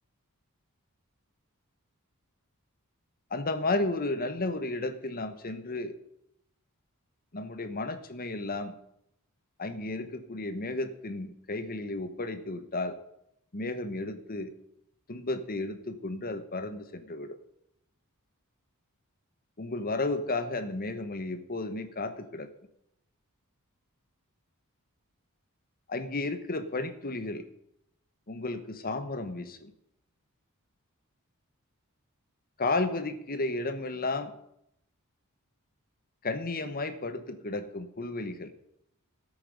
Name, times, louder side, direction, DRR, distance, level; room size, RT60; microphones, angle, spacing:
voice 1, 3.3-5.9 7.3-8.7 9.6-13.0 13.5-14.5 15.1-17.4 19.6-22.5 25.9-27.5 28.3-29.7 32.6-34.3 36.2-38.5, left 2 dB, 40° left, 9 dB, 1.2 m, -33 dB
16.0 x 8.5 x 5.3 m, 0.78 s
head